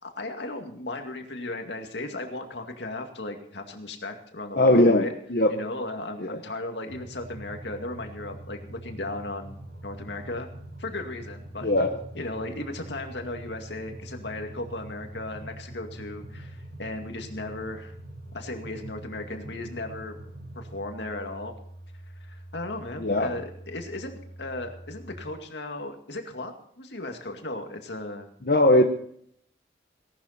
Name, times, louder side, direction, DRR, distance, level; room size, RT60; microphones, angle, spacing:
voice 1, 0.0-5.1 5.5-9.6 9.8-10.5 10.8-11.7 12.1-17.9 18.3-20.2 20.5-21.5 22.2-28.3, left 2 dB, 90° left, 4 dB, 2.3 m, -36 dB
voice 2, 4.6-5.0 5.3-5.5 6.2-6.3 11.6-11.9 23.0-23.4 28.5-28.8, left 1 dB, 60° left, 3 dB, 1.1 m, -19 dB
sound 1, 6.9-25.2, right 1 dB, 85° right, 5.1 m, -43 dB
18.0 x 12.0 x 4.3 m, 0.63 s
head